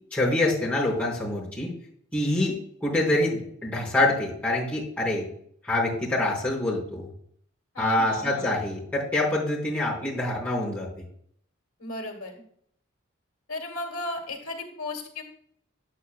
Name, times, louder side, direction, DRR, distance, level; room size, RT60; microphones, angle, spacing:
voice 1, 0.1-1.7 2.1-2.5 2.8-5.3 5.6-7.1 7.8-10.9, left 1 dB, 10° left, -8 dB, 3.8 m, -25 dB
voice 2, 7.7-8.6 11.8-12.4 13.5-15.2, left 2 dB, 90° left, 2 dB, 2.0 m, -35 dB
9.0 x 8.7 x 2.3 m, 0.64 s
head